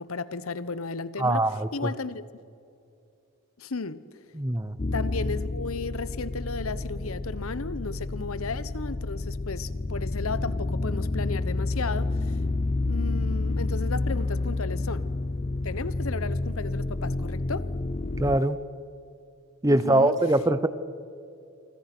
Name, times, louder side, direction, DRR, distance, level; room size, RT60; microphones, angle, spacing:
voice 1, 0.0-1.4 1.7-2.2 3.6-4.0 4.9-12.4 12.8-15.1 15.6-17.7 19.7-20.1, left 4 dB, 80° left, 15 dB, 1.0 m, -34 dB
voice 2, 1.2-1.7 4.3-4.8 18.2-18.6 19.6-20.7, right 1 dB, 15° right, 14 dB, 0.8 m, -22 dB
sound 1, 4.8-18.4, left 2 dB, 30° left, 0.5 m, -29 dB
28.0 x 25.0 x 6.1 m, 2.5 s
head